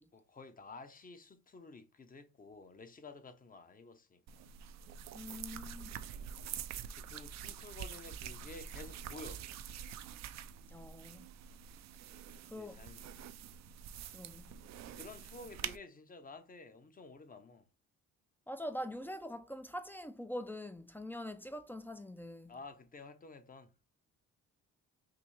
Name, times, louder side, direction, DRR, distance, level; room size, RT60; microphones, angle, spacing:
voice 1, 0.1-4.5 6.9-9.5 12.5-13.3 14.8-17.7 22.5-23.7, left 3 dB, 30° left, 0.8 m, -52 dB
sound 1, 4.3-15.8, right 8 dB, 65° right, 0.4 m, -46 dB
voice 2, 5.1-5.9 10.7-11.3 12.5-12.8 14.1-14.4 18.5-22.5, left 1 dB, 5° left, 0.4 m, -44 dB
5.9 x 2.0 x 3.2 m
cardioid pair, 90°, 30 cm